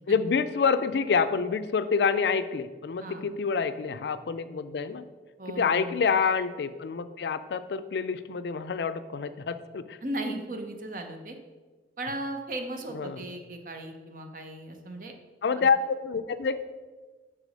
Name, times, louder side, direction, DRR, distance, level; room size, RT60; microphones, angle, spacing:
voice 1, 0.1-5.0 5.5-10.0 12.9-13.3 15.4-16.6, left 5 dB, 75° left, 12 dB, 0.4 m, -27 dB
voice 2, 5.4-6.0 10.0-11.4 12.0-15.1 15.6-15.7, right 1 dB, 50° right, 5 dB, 0.7 m, -36 dB
6.0 x 4.9 x 5.1 m, 1.3 s
head